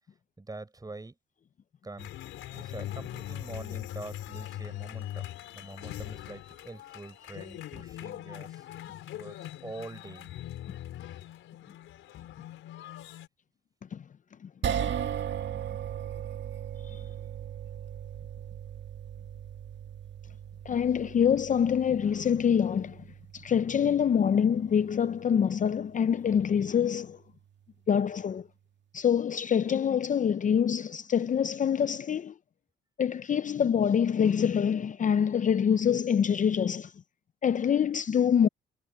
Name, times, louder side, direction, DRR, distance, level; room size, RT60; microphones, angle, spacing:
voice 1, 0.4-1.2 1.8-2.1 2.5-8.7 9.1-10.3, right 2 dB, 20° right, 6.0 m, -44 dB
sound 1, 2.0-13.3, left 13 dB, 85° left, 4.8 m, -41 dB
sound 2, 14.6-26.9, right 9 dB, 65° right, 2.0 m, -38 dB
voice 2, 20.7-23.0 23.3-27.2 27.9-28.5 28.9-32.3 33.0-36.9 37.4-38.5, left 8 dB, 40° left, 0.6 m, -25 dB
cardioid pair, 90°, 20 cm